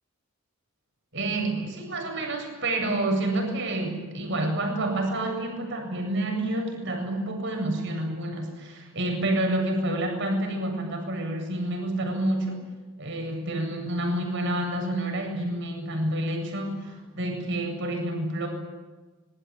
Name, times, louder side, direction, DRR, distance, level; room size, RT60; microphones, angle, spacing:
voice 1, 1.1-12.6 13.0-18.5, right 1 dB, 55° right, 3 dB, 8.0 m, -28 dB
26.0 x 23.0 x 9.1 m, 1.3 s
head